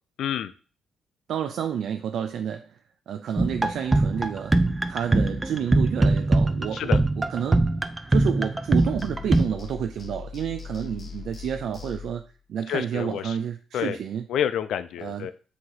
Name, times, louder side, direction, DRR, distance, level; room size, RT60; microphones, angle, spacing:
voice 1, 0.2-0.5 6.7-7.0 12.7-13.4 13.7-14.0 14.3-15.3, left 9 dB, 75° left, 0.5 m, -28 dB
voice 2, 1.3-2.8 3.1-7.0 7.3-7.6 8.1-12.2 12.5-14.3 15.0-15.3, right 8 dB, 70° right, 0.4 m, -30 dB
sound 1, 3.4-9.4, right 2 dB, 20° right, 0.6 m, -22 dB
sound 2, 8.8-12.3, left 6 dB, 35° left, 1.5 m, -40 dB
8.0 x 2.9 x 4.7 m
cardioid pair, 90°, 0 cm